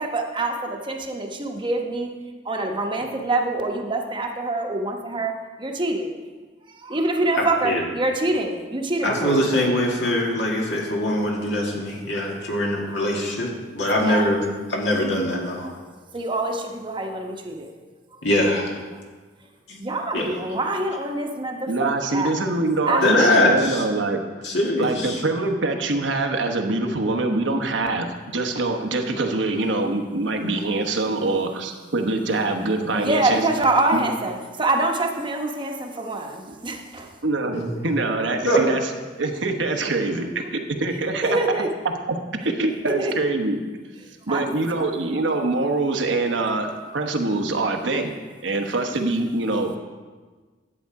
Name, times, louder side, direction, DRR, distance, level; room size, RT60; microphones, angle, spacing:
voice 1, 0.0-2.1 2.4-6.1 6.7-9.4 13.9-14.3 16.1-17.7 19.8-22.3 22.9-23.1 32.9-37.1 41.2-41.7 42.9-43.1 44.3-44.5, right 2 dB, 25° right, 2 dB, 1.0 m, -25 dB
voice 2, 7.4-7.8 9.0-14.4 14.7-15.7 18.2-18.8 19.7-19.8 20.1-20.3 23.0-23.8 24.4-25.2 38.4-38.6, left 1 dB, 70° left, -1 dB, 2.1 m, -22 dB
voice 3, 21.7-24.2 24.8-33.4 33.9-34.0 37.2-38.9 39.2-41.4 42.4-43.6 44.3-46.7 46.9-48.2 48.4-49.8, right 2 dB, 85° right, 4 dB, 1.1 m, -24 dB
11.0 x 8.0 x 4.7 m, 1.4 s
head